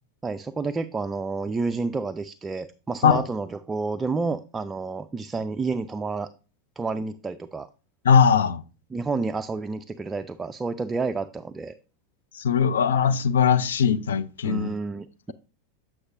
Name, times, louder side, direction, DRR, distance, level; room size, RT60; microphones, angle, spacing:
voice 1, 0.2-6.3 6.8-7.7 8.9-11.8 14.4-15.3, right 4 dB, 15° right, 0.3 m, -30 dB
voice 2, 8.0-8.6 12.4-14.7, left 7 dB, 70° left, 0.4 m, -20 dB
7.8 x 5.9 x 2.5 m
figure-of-eight pair, 90°, 0 cm